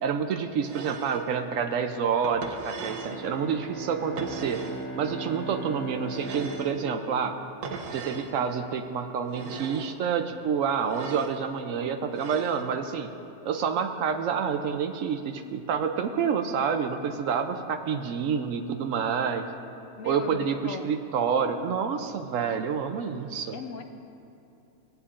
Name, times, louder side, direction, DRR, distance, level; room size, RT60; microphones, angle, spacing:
voice 1, 0.0-4.6 5.0-7.4 7.9-13.1 13.4-19.5 20.0-23.6, right 6 dB, 70° right, 7 dB, 0.9 m, -28 dB
sound 1, 0.6-1.3 2.2-3.2 4.2-4.9 6.1-6.8 7.6-8.3 9.3-10.0 10.8-11.4 12.1-12.7, right 5 dB, 85° right, 1.3 m, -39 dB
Bowed string instrument, 2.7-8.3, right 2 dB, 50° right, 1.4 m, -38 dB
voice 2, 20.0-20.9 23.5-23.8, left 6 dB, 70° left, 7 dB, 0.9 m, -38 dB
17.5 x 9.0 x 2.5 m, 2.9 s
omnidirectional pair, 1.5 m